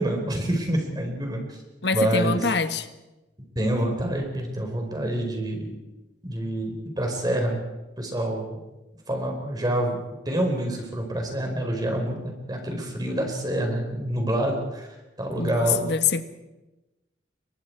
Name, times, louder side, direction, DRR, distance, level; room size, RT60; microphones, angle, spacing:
voice 1, 0.0-1.6 1.9-2.4 3.5-5.8 6.2-7.6 8.0-8.6 9.1-10.0 10.2-14.9 15.2-15.8, right 1 dB, 25° right, 4.5 m, -27 dB
voice 2, 1.8-2.9 15.4-16.2, left 5 dB, 70° left, 1.4 m, -25 dB
29.5 x 23.0 x 4.7 m
head